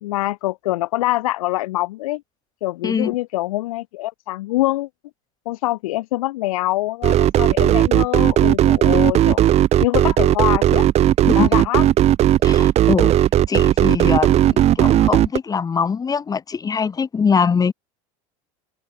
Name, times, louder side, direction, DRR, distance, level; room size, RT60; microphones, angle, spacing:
voice 1, 0.0-2.2 2.6-4.9 5.4-9.4 9.8-10.9 11.3-11.9, left 18 dB, 85° left, 1.2 m, -24 dB
sound 1, 7.0-15.4, right 12 dB, 40° right, 1.4 m, -15 dB
voice 2, 12.4-13.1 13.5-17.7, left 6 dB, 20° left, 3.0 m, -22 dB
supercardioid pair, 125°, 18 cm